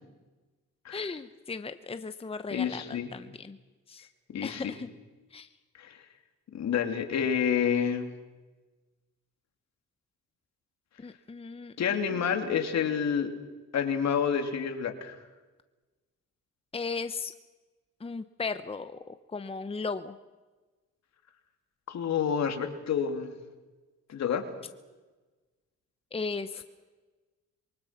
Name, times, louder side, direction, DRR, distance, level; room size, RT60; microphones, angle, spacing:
voice 1, 0.9-3.6 3.9-4.1 4.4-4.9 5.3-5.5 11.0-12.2 16.7-17.3 18.0-20.2 26.1-26.6, left 4 dB, 20° left, 10 dB, 0.9 m, -36 dB
voice 2, 2.5-3.1 4.3-4.7 5.8-6.0 6.5-8.1 11.8-13.3 13.7-15.2 21.9-23.3 24.1-24.5, left 7 dB, 60° left, 5 dB, 3.0 m, -28 dB
26.5 x 23.5 x 5.9 m, 1.2 s
cardioid pair, 90°, 30 cm